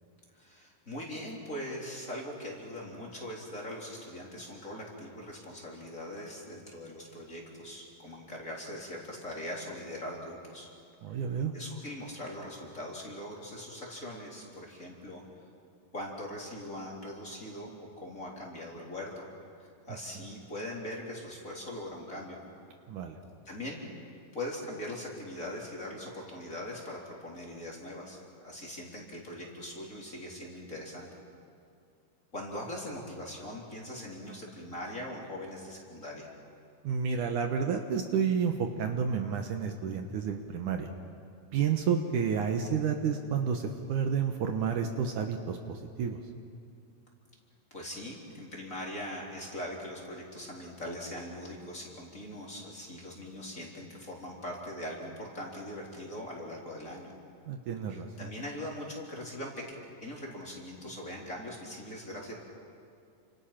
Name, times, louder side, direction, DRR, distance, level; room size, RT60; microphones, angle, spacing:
voice 1, 0.3-10.7 11.1-11.2 11.5-15.2 15.9-19.2 19.6-22.4 23.5-23.8 24.3-28.2 28.4-31.1 32.3-36.3 47.7-57.1 58.2-59.6 60.0-62.3, left 1 dB, 20° left, -3 dB, 4.0 m, -41 dB
voice 2, 11.0-11.5 20.2-20.3 22.9-23.2 36.8-40.9 41.5-46.2 57.5-58.1, right 7 dB, 65° right, 4 dB, 2.5 m, -30 dB
29.5 x 27.0 x 5.9 m, 2.5 s
omnidirectional pair, 4.1 m